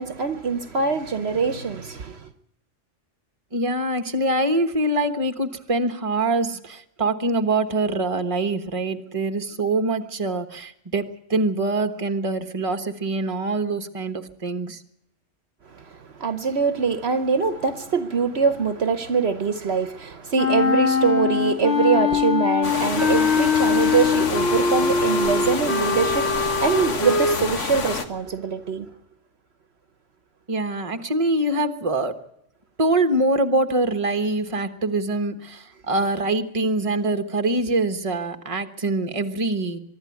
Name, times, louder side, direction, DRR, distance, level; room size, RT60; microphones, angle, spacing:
voice 1, 0.0-2.3 15.8-28.9, right 5 dB, 60° right, 1.2 m, -23 dB
voice 2, 3.5-14.8 30.5-32.2 32.8-39.8, right 2 dB, 30° right, 1.2 m, -24 dB
Wind instrument woodwind instrument, 20.4-27.4, left 5 dB, 65° left, 1.6 m, -22 dB
sound 1, 22.6-28.1, left 4 dB, 80° left, 1.8 m, -28 dB
23.5 x 12.0 x 9.3 m
omnidirectional pair, 1.2 m